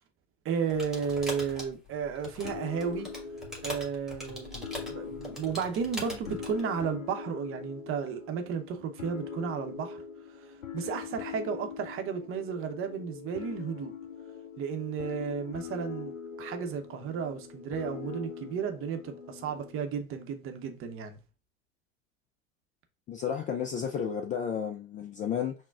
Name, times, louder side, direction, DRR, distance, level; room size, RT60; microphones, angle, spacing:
voice 1, 0.4-3.1 3.6-10.0 10.4-10.5 10.7-13.9 14.6-21.2, right 6 dB, 35° right, 0.7 m, -33 dB
sound 1, 0.7-6.6, left 1 dB, ahead, 1.4 m, -41 dB
sound 2, 2.4-19.9, left 6 dB, 90° left, 0.6 m, -42 dB
voice 2, 23.1-25.5, left 7 dB, 20° left, 0.3 m, -32 dB
5.8 x 2.2 x 2.4 m
hypercardioid pair, 85°, 39 cm